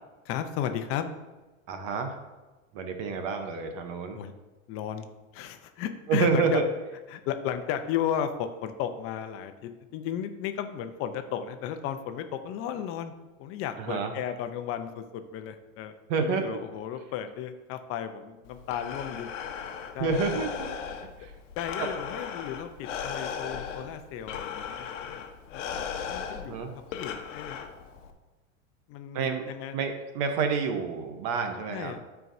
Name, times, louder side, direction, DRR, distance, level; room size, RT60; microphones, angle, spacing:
voice 1, 0.2-1.1 4.1-4.3 4.7-5.1 5.3-6.6 7.1-13.1 13.4-19.3 19.9-20.5 21.6-25.2 25.5-27.6 28.9-29.8 31.7-32.0, left 9 dB, 35° left, 8 dB, 0.7 m, -34 dB
voice 2, 1.7-2.2 2.7-4.2 6.1-6.6 13.8-14.1 16.1-16.6 20.0-20.7 21.0-21.3 21.8-21.9 26.4-26.7 29.1-31.9, right 5 dB, 45° right, 6 dB, 1.0 m, -29 dB
Breathing, 18.5-28.1, left 7 dB, 70° left, 1.1 m, -37 dB
12.5 x 4.7 x 2.7 m, 1.2 s
hypercardioid pair, 125°, 39 cm